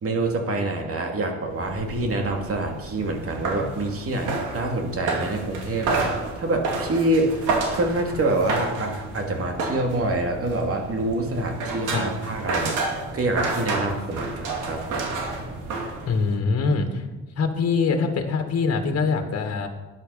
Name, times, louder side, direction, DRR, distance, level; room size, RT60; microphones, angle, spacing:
voice 1, 0.0-6.0 6.4-7.4 7.7-15.0, right 2 dB, 50° right, 3 dB, 2.6 m, -26 dB
sound 1, 1.5-16.4, right 3 dB, 90° right, 2.6 m, -30 dB
voice 2, 16.1-17.0 17.4-19.7, left 4 dB, 55° left, 5 dB, 2.0 m, -23 dB
12.5 x 9.9 x 5.6 m, 1.2 s
cardioid pair, 90°, 30 cm